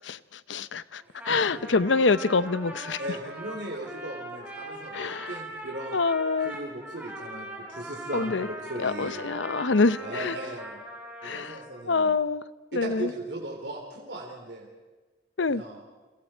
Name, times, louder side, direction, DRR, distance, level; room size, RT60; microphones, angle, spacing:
voice 1, 0.0-3.0 4.9-5.3 5.9-6.5 8.1-8.5 8.8-10.4 11.2-11.6 11.9-12.4 12.7-13.1 15.4-15.6, left 4 dB, 80° left, 15 dB, 0.8 m, -26 dB
Trumpet, 1.0-11.9, right 1 dB, 10° right, 4.2 m, -41 dB
voice 2, 1.1-1.6 3.0-6.0 6.4-9.2 10.0-10.8 11.2-12.1 12.7-14.7 15.4-15.8, right 1 dB, 65° right, -1 dB, 3.7 m, -38 dB
29.5 x 26.5 x 4.6 m, 1.3 s
head